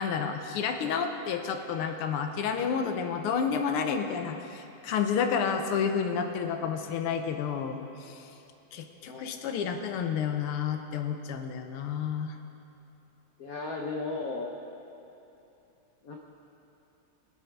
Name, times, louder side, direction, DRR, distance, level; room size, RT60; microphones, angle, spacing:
voice 1, 0.0-8.3 8.7-12.4, left 6 dB, 85° left, 6 dB, 1.8 m, -30 dB
voice 2, 9.0-9.4 13.4-14.5 16.0-16.1, left 3 dB, 55° left, 0 dB, 1.1 m, -35 dB
21.0 x 8.4 x 4.6 m, 3.0 s
omnidirectional pair, 2.4 m